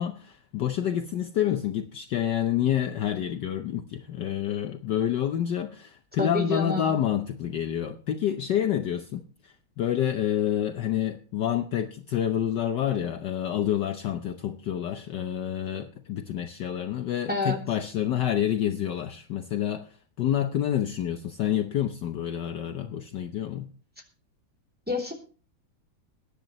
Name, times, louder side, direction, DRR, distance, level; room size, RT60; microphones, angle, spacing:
voice 1, 0.0-19.8 20.2-23.7, left 10 dB, 65° left, 7 dB, 1.3 m, -28 dB
voice 2, 6.2-7.0 17.3-17.6 24.9-25.1, left 2 dB, 5° right, 0 dB, 2.8 m, -28 dB
21.5 x 10.5 x 3.0 m, 0.38 s
omnidirectional pair, 2.3 m